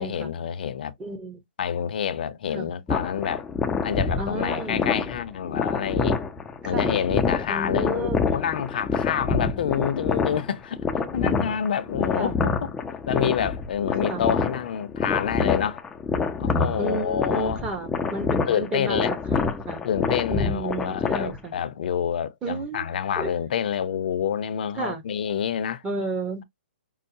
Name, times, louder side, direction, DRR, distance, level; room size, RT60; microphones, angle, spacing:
voice 1, 0.0-0.9 1.6-3.5 3.8-6.2 6.7-10.8 11.1-12.7 13.1-15.8 16.4-17.6 18.1-19.1 19.8-25.8, left 8 dB, 55° left, 0.6 m, -27 dB
voice 2, 1.0-1.4 2.5-2.7 4.2-4.9 6.6-6.9 7.5-8.3 12.1-12.3 14.0-14.2 16.8-19.9 20.3-21.5 22.4-22.9 23.2-23.3 24.8-25.0 25.8-26.4, right 2 dB, 15° right, 0.9 m, -32 dB
sound 1, 2.9-21.6, left 5 dB, 10° left, 0.5 m, -27 dB
5.4 x 2.1 x 2.6 m
hypercardioid pair, 145°, 6 cm